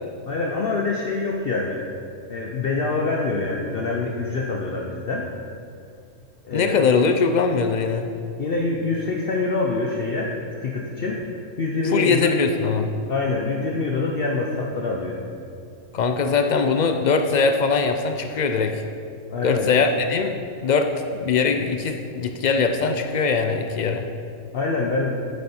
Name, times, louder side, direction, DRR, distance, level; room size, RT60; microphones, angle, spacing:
voice 1, 0.3-1.8 2.3-5.3 6.4-6.8 8.4-10.3 10.6-12.3 13.1-15.2 19.3-19.7 24.5-25.2, left 3 dB, 55° left, -1 dB, 0.8 m, -25 dB
voice 2, 6.5-8.1 11.8-12.9 15.9-18.8 19.4-20.3 20.6-24.1, left 5 dB, 80° left, 6 dB, 0.4 m, -21 dB
8.5 x 7.9 x 4.3 m, 2.4 s
omnidirectional pair, 1.3 m